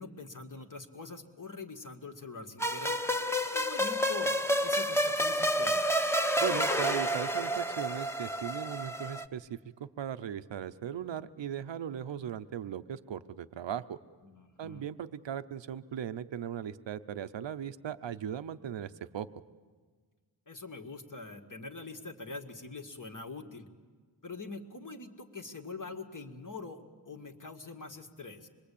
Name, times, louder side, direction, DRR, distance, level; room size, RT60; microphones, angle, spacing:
voice 1, 0.0-3.0 3.5-4.3 4.6-6.1 14.2-14.8 20.5-23.7 24.2-28.5, left 3 dB, 45° left, 3 dB, 2.0 m, -44 dB
sound 1, 2.6-9.2, equal, 5° left, 1.0 m, -29 dB
voice 2, 6.4-14.0 14.6-19.3, right 9 dB, 85° right, 12 dB, 0.8 m, -38 dB
26.0 x 22.0 x 8.5 m, 1.5 s
wide cardioid pair, 95°, 43 cm